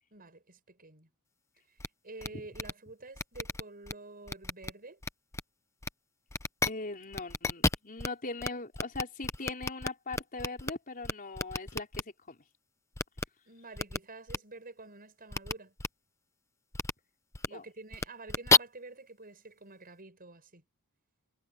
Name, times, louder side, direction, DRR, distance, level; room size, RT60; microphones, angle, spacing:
voice 1, 0.1-1.1 1.7-1.8 2.0-5.0 13.4-15.7 17.5-20.6, right 3 dB, 40° right, 6.8 m, -49 dB
sound 1, 1.8-1.9 2.2-2.3 2.5-2.7 3.2-3.9 4.3-4.7 5.0-5.4 5.8-5.9 6.3-6.7 7.1-8.1 8.4-8.5 8.7-10.7 11.0-12.0 13.0-13.2 13.8-14.0 14.3-14.4 15.3-15.5 15.8-15.9 16.7-16.9 17.3-17.5 17.9-18.6, left 3 dB, 15° left, 0.7 m, -30 dB
voice 2, 6.6-12.4 17.5-17.6, left 3 dB, 40° left, 4.3 m, -40 dB
head